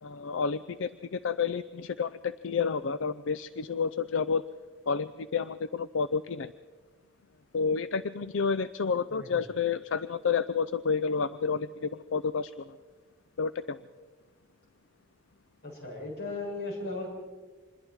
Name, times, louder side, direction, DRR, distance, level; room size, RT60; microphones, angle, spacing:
voice 1, 0.0-4.4 4.9-6.5 7.5-12.6 13.4-13.8, left 5 dB, 75° left, 15 dB, 0.5 m, -30 dB
voice 2, 15.6-17.1, left 2 dB, 55° left, -3 dB, 7.2 m, -37 dB
26.0 x 21.0 x 4.7 m, 1.5 s
head